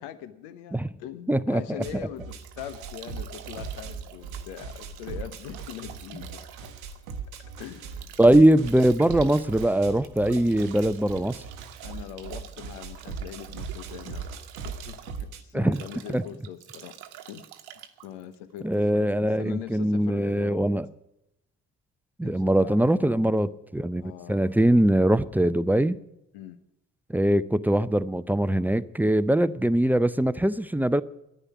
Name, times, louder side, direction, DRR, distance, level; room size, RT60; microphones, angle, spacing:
voice 1, 0.0-6.7 7.6-8.4 11.8-17.0 17.3-17.5 18.0-20.7 22.2-23.3 24.0-24.4 26.3-26.6, left 11 dB, 75° left, 0.9 m, -42 dB
voice 2, 1.3-1.8 8.2-11.4 15.5-15.8 16.1-16.2 18.6-20.9 22.2-24.0 24.3-26.0 27.1-31.0, right 1 dB, 5° right, 0.5 m, -22 dB
sound 1, 1.8-15.4, right 5 dB, 90° right, 0.9 m, -39 dB
Bathtub (filling or washing) / Drip / Trickle dribble, 1.9-19.1, right 11 dB, 70° right, 1.1 m, -47 dB
10.5 x 9.9 x 9.4 m
hypercardioid pair, 40°, 40 cm